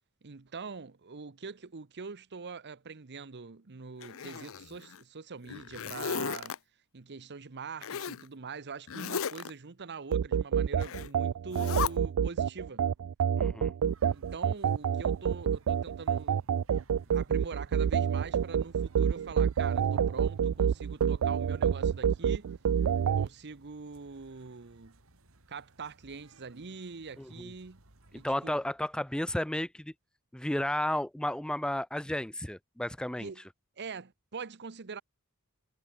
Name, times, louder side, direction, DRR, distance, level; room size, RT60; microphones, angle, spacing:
voice 1, 0.2-6.6 6.9-12.9 14.1-16.5 17.0-22.5 23.1-25.0 25.5-27.8 28.1-28.6 33.2-33.4 33.8-35.0, right 5 dB, 50° right, 0.9 m, -43 dB
Zipper (clothing), 4.0-5.0 5.4-6.6 7.8-8.2 8.9-9.5 10.8-11.1 11.5-11.9, left 7 dB, 65° left, 0.7 m, -35 dB
sound 1, 10.1-23.3, right 8 dB, 85° right, 0.4 m, -28 dB
voice 2, 13.4-13.7 27.2-27.5 28.1-29.9 30.3-33.3, left 1 dB, 5° left, 0.5 m, -33 dB
sound 2, 13.8-28.4, right 2 dB, 65° right, 2.9 m, -61 dB
head